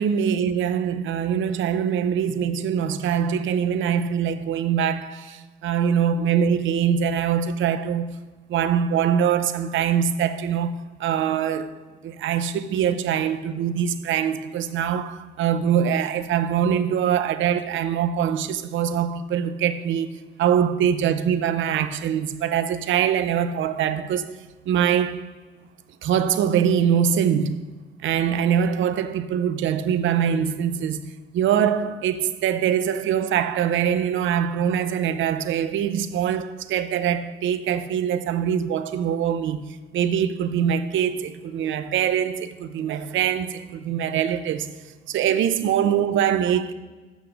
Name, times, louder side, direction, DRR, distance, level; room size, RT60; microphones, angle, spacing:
voice 1, 0.0-8.2 8.5-11.7 12.0-24.4 24.7-25.3 26.0-27.7 28.0-46.7, right 8 dB, 75° right, 0.7 m, -23 dB
8.3 x 6.4 x 6.3 m
cardioid pair, 90°, 20 cm